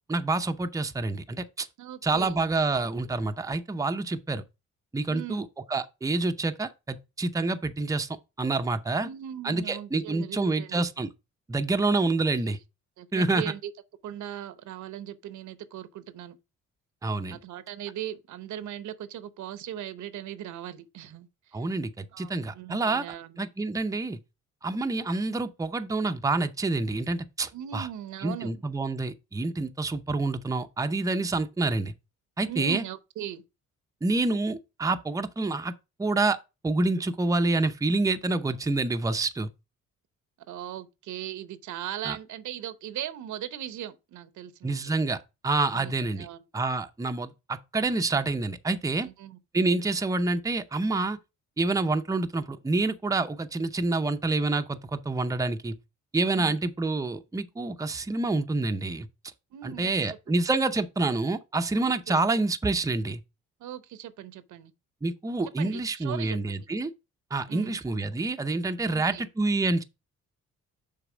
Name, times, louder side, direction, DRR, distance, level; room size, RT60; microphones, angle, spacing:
voice 1, 0.1-1.7 2.0-4.4 4.9-8.1 8.4-9.1 9.4-11.1 11.5-12.6 13.1-13.4 17.0-17.4 21.5-23.1 23.4-24.2 24.6-27.9 28.2-31.9 32.4-32.8 34.0-35.7 36.0-36.4 36.6-39.5 42.0-42.2 44.6-45.2 45.4-46.3 46.5-49.1 49.5-51.2 51.6-55.7 56.1-59.1 59.6-63.2 65.0-66.9 67.3-69.8, right 3 dB, 10° right, 0.6 m, -27 dB
voice 2, 1.8-2.4 5.1-5.4 9.0-10.8 11.9-12.2 12.4-12.5 13.0-13.7 14.0-16.4 17.3-21.3 22.1-23.4 27.5-28.6 32.5-33.4 40.5-44.8 45.7-46.4 49.0-49.4 56.3-56.6 59.5-60.2 61.8-62.2 63.6-64.7 65.4-66.7 67.5-67.8 68.9-69.2, right 10 dB, 75° right, 0.8 m, -39 dB
6.8 x 4.1 x 5.0 m
cardioid pair, 90°, 30 cm